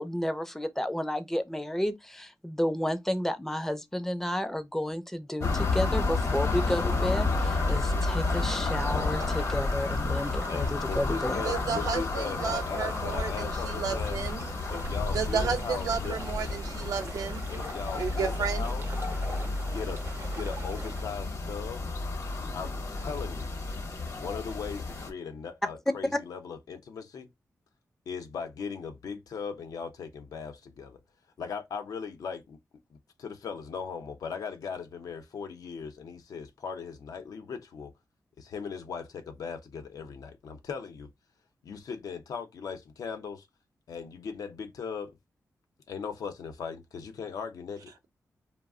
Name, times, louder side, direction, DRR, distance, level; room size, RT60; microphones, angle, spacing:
voice 1, 0.0-11.4 26.1-26.2, left 1 dB, 5° left, 0.4 m, -31 dB
sound 1, 5.4-25.1, left 3 dB, 55° left, 0.8 m, -31 dB
sound 2, 5.5-21.0, right 4 dB, 45° right, 0.5 m, -46 dB
voice 2, 10.5-14.2 14.7-16.6 17.5-19.1 19.7-20.0 20.3-21.9 22.5-23.6 24.2-27.3 28.1-31.0 31.4-32.6 33.2-37.9 38.4-41.1 41.6-43.5 43.9-45.1 45.9-47.9, left 6 dB, 85° left, 0.6 m, -38 dB
voice 3, 11.4-14.4 15.1-17.4 18.0-18.7, right 6 dB, 85° right, 0.6 m, -32 dB
2.3 x 2.0 x 3.5 m
wide cardioid pair, 90°, 6 cm